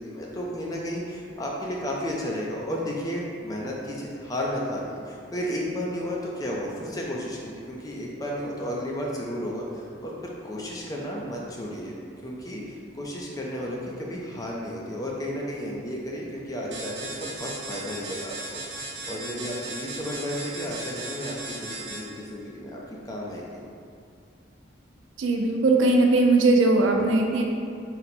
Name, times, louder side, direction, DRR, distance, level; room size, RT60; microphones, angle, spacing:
voice 1, 0.0-11.9 12.2-18.6 19.1-23.6, equal, 20° left, -3 dB, 0.4 m, -33 dB
sound 1, 16.7-22.3, right 2 dB, 65° right, 0.8 m, -37 dB
voice 2, 25.2-27.4, right 2 dB, 80° right, 2 dB, 0.4 m, -20 dB
3.9 x 2.1 x 4.3 m, 2.4 s
head